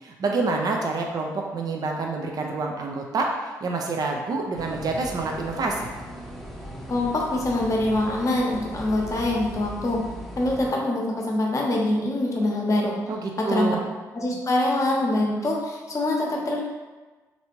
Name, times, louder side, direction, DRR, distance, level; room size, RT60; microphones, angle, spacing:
voice 1, 0.0-5.9 13.1-13.8, right 3 dB, 45° right, 1 dB, 0.5 m, -27 dB
sound 1, 4.5-10.7, equal, ahead, 0.8 m, -38 dB
voice 2, 6.9-10.0 10.4-12.9 13.4-13.8 14.1-16.6, left 1 dB, 35° left, -1 dB, 0.8 m, -24 dB
3.2 x 2.7 x 3.0 m, 1.3 s
figure-of-eight pair, 40°, 9 cm